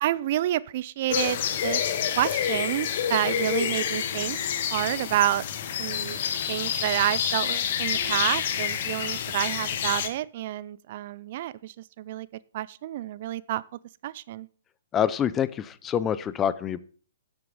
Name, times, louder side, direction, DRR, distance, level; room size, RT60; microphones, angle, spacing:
voice 1, 0.0-1.8 2.2-4.4 4.7-5.4 5.8-6.2 6.5-12.3 12.5-13.6 14.0-14.5, right 14 dB, 50° right, 0.4 m, -29 dB
sound 1, 1.1-10.1, left 9 dB, 50° left, 1.4 m, -28 dB
voice 2, 14.9-16.8, left 9 dB, 20° left, 0.6 m, -26 dB
10.5 x 7.9 x 5.3 m
hypercardioid pair, 140°, 0 cm